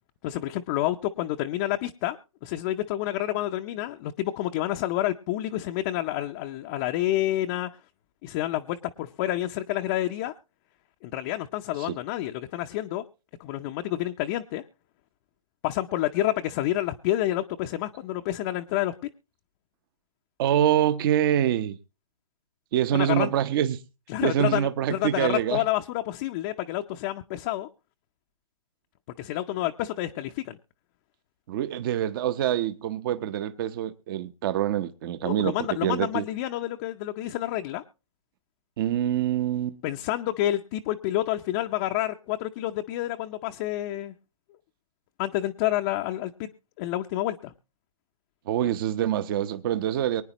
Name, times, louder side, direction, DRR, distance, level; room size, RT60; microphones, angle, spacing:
voice 1, 0.2-7.7 8.2-10.3 11.0-13.0 13.4-14.6 15.6-18.9 22.9-23.3 24.1-27.7 29.2-30.6 35.2-37.8 39.8-44.1 45.2-46.5 46.8-47.5, left 14 dB, 25° left, 0.6 m, -29 dB
voice 2, 20.4-21.8 22.7-23.8 24.2-25.6 31.5-36.2 38.8-39.8 48.5-50.2, right 11 dB, 40° right, 0.9 m, -25 dB
23.5 x 9.7 x 3.0 m
hypercardioid pair, 140°, 18 cm